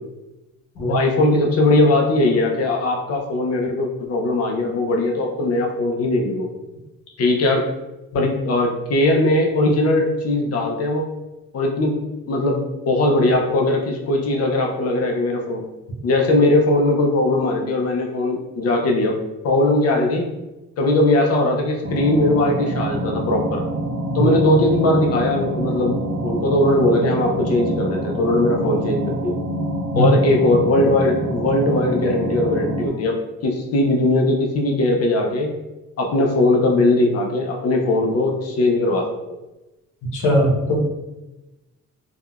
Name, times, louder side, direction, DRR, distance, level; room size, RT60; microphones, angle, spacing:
voice 1, 0.8-6.5 7.2-7.6 8.1-11.1 11.5-12.0 12.3-15.6 16.0-19.2 19.4-20.3 20.8-23.6 24.1-26.0 26.2-29.4 30.0-33.2 33.4-35.5 36.0-39.4, left 2 dB, 55° left, 1 dB, 0.5 m, -19 dB
sound 1, 21.8-32.9, right 1 dB, 35° right, 0.5 m, -26 dB
voice 2, 40.1-40.8, equal, 80° left, -3 dB, 1.0 m, -19 dB
3.5 x 2.2 x 2.3 m, 1.0 s
cardioid pair, 125°, 31 cm